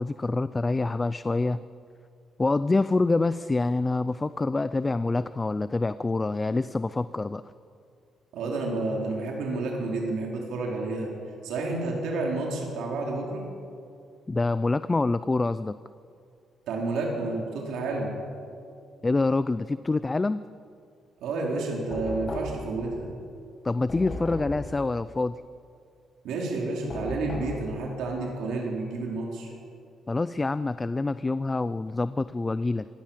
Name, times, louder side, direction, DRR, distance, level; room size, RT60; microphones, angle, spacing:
voice 1, 0.0-1.6 2.4-7.4 14.3-15.8 19.0-20.4 23.6-25.4 30.1-32.9, left 3 dB, 20° left, 14 dB, 0.5 m, -26 dB
voice 2, 8.3-11.1 11.4-13.4 16.7-18.1 21.2-23.1 26.2-29.5, right 3 dB, 90° right, -1 dB, 4.4 m, -30 dB
Knock, 21.9-22.8 23.9-24.6 26.9-27.6, left 2 dB, 35° left, 7.1 m, -35 dB
25.0 x 18.0 x 7.5 m, 2.4 s
cardioid pair, 130°, 0 cm